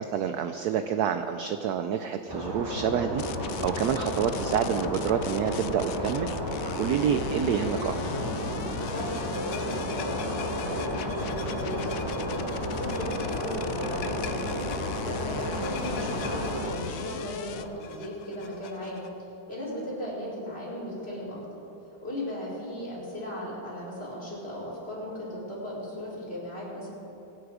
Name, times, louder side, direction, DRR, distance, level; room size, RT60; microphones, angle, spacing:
voice 1, 0.0-3.2 3.6-6.3 6.8-8.1, right 8 dB, 70° right, 9 dB, 0.9 m, -28 dB
sound 1, 2.3-16.8, equal, 10° right, 2.0 m, -32 dB
sound 2, 3.1-17.6, left 9 dB, 90° left, 0.7 m, -39 dB
sound 3, 8.8-19.1, left 6 dB, 70° left, 1.7 m, -43 dB
voice 2, 8.9-10.4 10.6-12.3 12.7-14.5 15.0-19.0 19.5-21.4 22.0-26.9, left 1 dB, 30° left, -7 dB, 4.6 m, -36 dB
24.0 x 9.8 x 4.9 m, 3.0 s
omnidirectional pair, 2.2 m